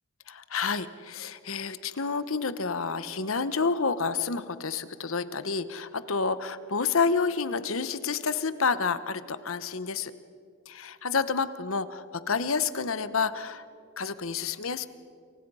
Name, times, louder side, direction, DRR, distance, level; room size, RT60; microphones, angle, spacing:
voice 1, 0.3-10.1 10.7-13.6 14.0-14.9, left 5 dB, 80° left, 13 dB, 1.0 m, -29 dB
29.5 x 24.5 x 5.6 m, 2.3 s
head